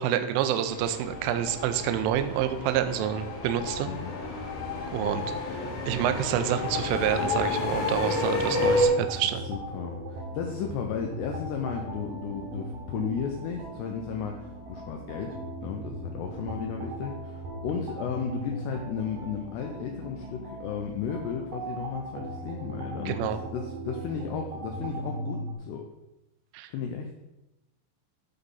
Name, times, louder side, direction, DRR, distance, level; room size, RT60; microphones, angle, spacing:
voice 1, 0.0-3.9 4.9-5.2 5.9-9.4 23.1-23.4 26.5-26.7, right 10 dB, 85° right, 9 dB, 3.2 m, -27 dB
sound 1, 0.6-8.9, left 3 dB, 65° left, 2.9 m, -30 dB
sound 2, 8.5-25.5, right 1 dB, 65° right, 2.2 m, -38 dB
voice 2, 8.8-25.9 26.7-27.1, left 7 dB, 85° left, 3 dB, 2.4 m, -34 dB
11.5 x 4.0 x 5.5 m, 0.97 s
omnidirectional pair, 5.8 m